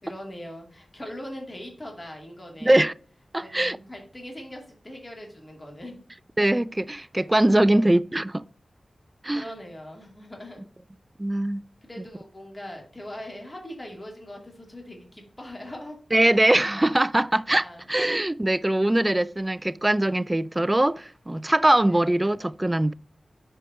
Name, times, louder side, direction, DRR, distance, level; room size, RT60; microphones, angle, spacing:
voice 1, 0.0-2.9 3.4-6.0 7.6-7.7 9.3-10.6 11.8-16.0 17.6-17.9 21.9-22.1, left 1 dB, 30° left, 2.4 m, -41 dB
voice 2, 2.6-2.9 3.3-3.8 6.4-8.5 9.2-9.4 11.2-11.6 16.1-22.9, right 1 dB, 20° right, 0.3 m, -22 dB
4.9 x 4.4 x 5.2 m
cardioid pair, 45°, 0 cm